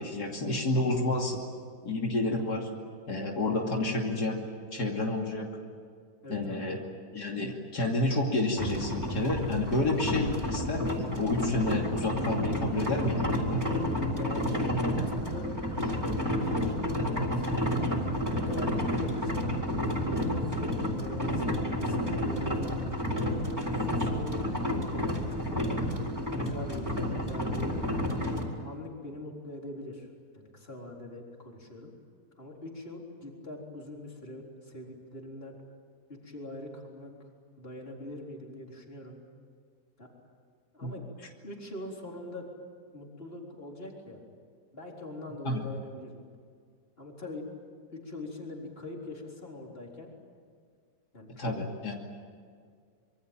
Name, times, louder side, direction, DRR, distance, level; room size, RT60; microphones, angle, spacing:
voice 1, 0.0-1.4 1.8-2.7 3.1-4.4 4.7-5.5 6.3-6.8 7.1-13.6 40.8-40.9 45.4-45.6 51.4-51.9, left 2 dB, 80° left, 0 dB, 3.2 m, -30 dB
voice 2, 6.2-6.7 14.1-17.5 17.9-25.6 26.3-28.2 28.6-30.1 30.3-31.9 32.4-35.5 36.1-37.1 37.6-39.2 40.0-40.1 40.7-41.0 41.4-42.5 42.9-44.3 44.7-46.3 47.0-47.4 47.9-50.1 51.1-51.5 51.9-52.0, left 1 dB, 35° left, 0 dB, 4.2 m, -43 dB
sound 1, 8.6-28.4, equal, 10° right, 4.0 m, -30 dB
26.0 x 23.5 x 9.0 m, 2.1 s
omnidirectional pair, 1.7 m